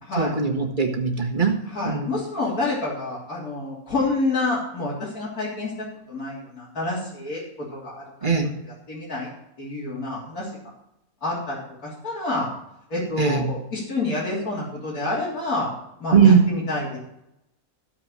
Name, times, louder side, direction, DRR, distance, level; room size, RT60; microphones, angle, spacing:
voice 1, 0.2-2.1 8.2-8.5 13.2-13.5 16.1-16.4, right 6 dB, 35° right, 2 dB, 1.6 m, -20 dB
voice 2, 1.7-5.7 6.1-7.4 7.7-8.0 8.6-9.3 9.6-10.5 11.2-12.5 12.9-15.7 16.0-17.0, left 2 dB, 85° left, -7 dB, 3.8 m, -28 dB
14.5 x 4.9 x 7.5 m, 0.82 s
omnidirectional pair, 1.5 m